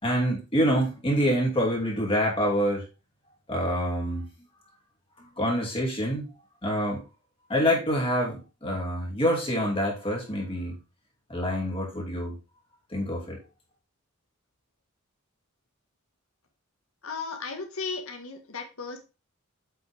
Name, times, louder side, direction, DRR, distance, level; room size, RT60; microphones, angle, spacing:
voice 1, 0.0-2.8 3.5-4.3 5.2-6.3 6.6-7.0 7.5-10.8 11.3-12.3 12.9-13.4, equal, 25° left, -1 dB, 2.9 m, -26 dB
voice 2, 17.0-19.0, left 4 dB, 80° left, 4 dB, 1.8 m, -35 dB
8.1 x 5.8 x 3.6 m, 0.29 s
head